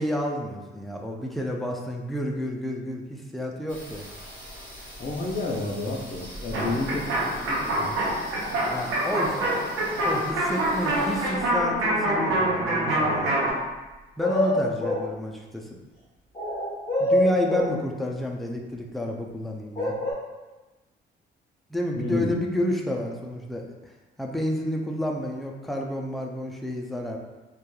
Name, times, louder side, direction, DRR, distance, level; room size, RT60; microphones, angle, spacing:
voice 1, 0.0-4.0 6.5-6.7 8.7-9.5 10.0-13.3 14.2-15.8 17.0-19.9 21.7-23.7 24.2-27.2, left 1 dB, ahead, 0 dB, 0.3 m, -30 dB
sound 1, 3.7-14.0, equal, 25° right, 1.4 m, -43 dB
voice 2, 5.0-7.9 21.9-22.3, left 2 dB, 45° left, -1 dB, 0.6 m, -30 dB
sound 2, 6.5-13.5, right 1 dB, 90° right, 0.6 m, -25 dB
sound 3, 14.2-15.1 16.4-17.8 19.8-20.1, left 1 dB, 30° left, 0.9 m, -24 dB
2.8 x 2.3 x 2.3 m, 1.1 s
cardioid pair, 90°, 20 cm